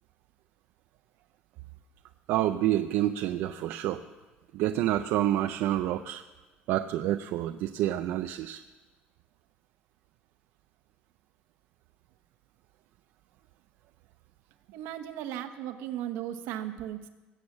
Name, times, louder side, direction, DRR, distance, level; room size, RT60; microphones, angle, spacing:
voice 1, 2.3-4.0 4.5-6.2 6.7-8.6, right 13 dB, 70° right, 7 dB, 0.5 m, -28 dB
voice 2, 14.7-17.1, right 11 dB, 85° right, 7 dB, 1.2 m, -36 dB
20.0 x 8.1 x 7.3 m, 1.2 s
cardioid pair, 170°, 4 cm